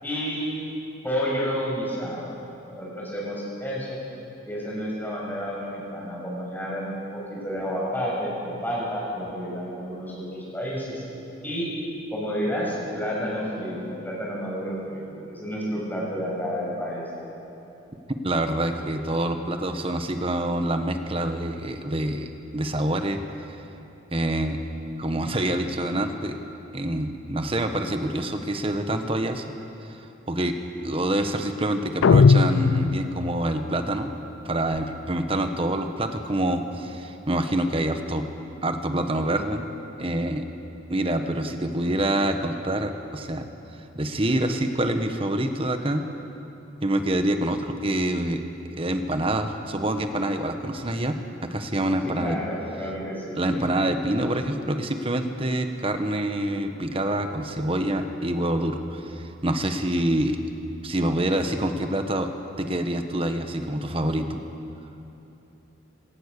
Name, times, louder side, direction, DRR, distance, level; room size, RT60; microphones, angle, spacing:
voice 1, 0.0-0.6 1.0-2.4 2.7-4.0 4.4-11.0 11.4-11.8 12.1-17.0 52.0-53.9, equal, 10° left, -5 dB, 6.5 m, -30 dB
voice 2, 18.2-23.2 24.1-24.6 25.0-26.4 26.7-29.4 29.8-30.0 30.3-30.5 30.8-34.1 34.4-38.2 38.6-39.7 40.0-40.4 40.9-43.4 43.9-46.0 46.8-48.4 48.8-51.2 51.4-52.4 53.4-60.4 60.8-62.3 62.6-64.4, right 1 dB, 30° right, 6 dB, 1.3 m, -26 dB
sound 1, 32.0-33.5, left 4 dB, 85° left, 0.4 m, -18 dB
25.5 x 18.5 x 6.9 m, 2.9 s
head